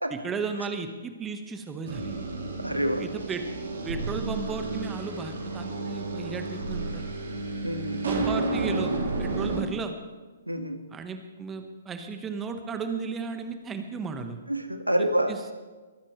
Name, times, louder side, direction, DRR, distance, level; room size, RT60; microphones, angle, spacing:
voice 1, 0.1-2.2 3.0-3.4 3.8-7.1 8.0-10.0 10.9-14.4 15.0-15.4, right 5 dB, 15° right, 7 dB, 1.4 m, -35 dB
sound 1, 1.8-9.6, right 3 dB, 55° right, 3.7 m, -31 dB
voice 2, 2.6-3.1 7.6-8.0 10.5-10.8 14.5-15.4, right 1 dB, 85° right, 6 dB, 1.7 m, -27 dB
23.5 x 13.5 x 3.2 m, 1.3 s
figure-of-eight pair, 125°, 0 cm